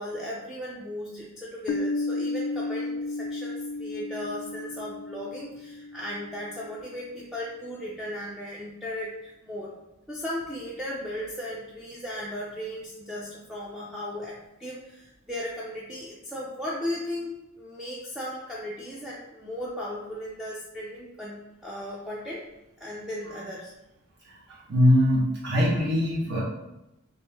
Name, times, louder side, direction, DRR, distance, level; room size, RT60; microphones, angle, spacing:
voice 1, 0.0-9.7 10.1-22.4 22.8-23.7, left 1 dB, ahead, -6 dB, 0.4 m, -36 dB
Piano, 1.7-7.0, left 2 dB, 85° left, 0.3 m, -33 dB
voice 2, 24.5-26.4, left 1 dB, 55° right, -5 dB, 1.0 m, -22 dB
3.1 x 2.6 x 3.4 m, 0.90 s
head